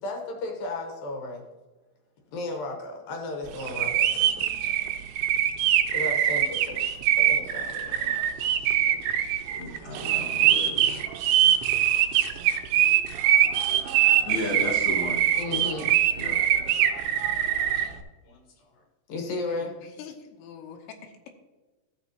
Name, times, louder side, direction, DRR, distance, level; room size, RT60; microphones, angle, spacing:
voice 1, 0.0-1.4 2.3-4.5 5.9-8.2 8.6-8.8 9.2-9.4 10.0-10.3 12.6-12.7 13.8-14.2 15.3-16.3 17.6-17.7 18.3-18.8 19.1-19.8, left 2 dB, 65° left, 2 dB, 2.5 m, -36 dB
sound 1, 3.6-17.9, right 11 dB, 90° right, 2.1 m, -23 dB
voice 2, 9.6-11.0 14.3-15.2 16.2-16.4, left 2 dB, 40° left, -5 dB, 2.3 m, -33 dB
voice 3, 19.1-21.3, left 7 dB, 90° left, 3 dB, 3.1 m, -45 dB
13.5 x 7.2 x 2.9 m, 1.2 s
omnidirectional pair, 5.1 m